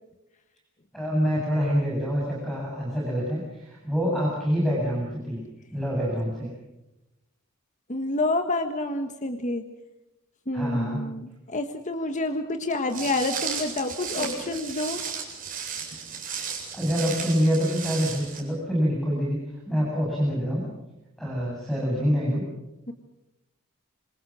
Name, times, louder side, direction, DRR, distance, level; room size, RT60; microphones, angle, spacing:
voice 1, 0.9-5.4 5.7-6.5 10.5-11.0 14.2-14.3 16.7-20.6 21.2-22.4, equal, ahead, -5 dB, 8.0 m, -26 dB
voice 2, 7.9-9.6 10.5-15.0 22.9-23.0, left 2 dB, 35° left, 6 dB, 1.5 m, -28 dB
Walk footsteps, 12.9-18.4, right 6 dB, 40° right, 7.7 m, -34 dB
27.5 x 26.5 x 6.3 m, 0.98 s
head